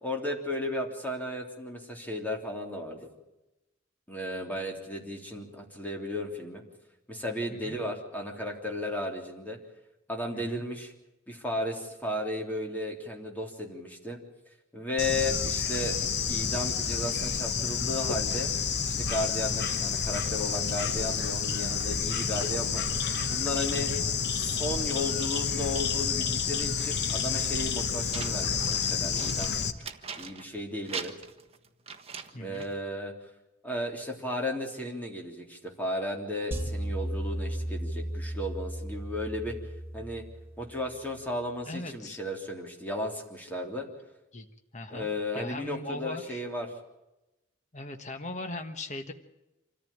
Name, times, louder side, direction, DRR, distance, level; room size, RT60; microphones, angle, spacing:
voice 1, 0.0-3.1 4.1-6.6 7.1-9.6 10.1-10.9 11.3-14.2 14.7-18.5 18.9-22.8 23.3-23.9 24.4-29.5 30.2-31.1 32.3-33.1 33.6-39.6 39.9-40.2 40.6-43.9 44.9-46.7, left 1 dB, 10° left, 1 dB, 3.4 m, -34 dB
voice 2, 10.3-10.6 15.1-15.4 23.7-24.0 32.3-32.6 41.7-42.2 44.3-44.5 44.7-45.1 45.3-46.4 47.7-49.1, left 2 dB, 35° left, 6 dB, 1.4 m, -39 dB
Bird / Insect, 15.0-29.7, left 6 dB, 55° left, 1.3 m, -29 dB
sound 1, 28.1-30.6 30.9-32.8, right 6 dB, 30° right, 1.4 m, -41 dB
sound 2, 36.5-40.8, right 1 dB, 10° right, 3.3 m, -35 dB
26.5 x 14.5 x 8.8 m, 0.98 s
head